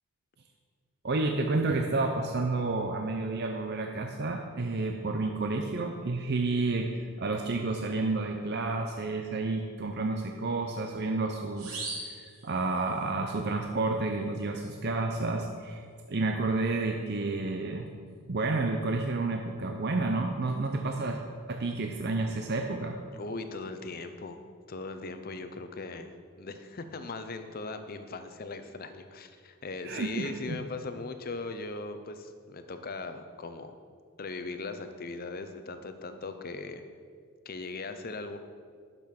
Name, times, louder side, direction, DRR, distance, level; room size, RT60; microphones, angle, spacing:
voice 1, 1.0-15.8 16.1-17.9 18.3-21.2 21.5-23.0 29.8-30.6, right 3 dB, 50° right, 3 dB, 0.6 m, -30 dB
sound 1, 11.6-13.1, right 2 dB, 80° right, 3.0 m, -40 dB
voice 2, 23.1-24.4 24.7-33.7 34.2-36.8 37.4-38.4, left 3 dB, 40° left, 9 dB, 0.7 m, -39 dB
10.5 x 6.8 x 5.9 m, 2.1 s
head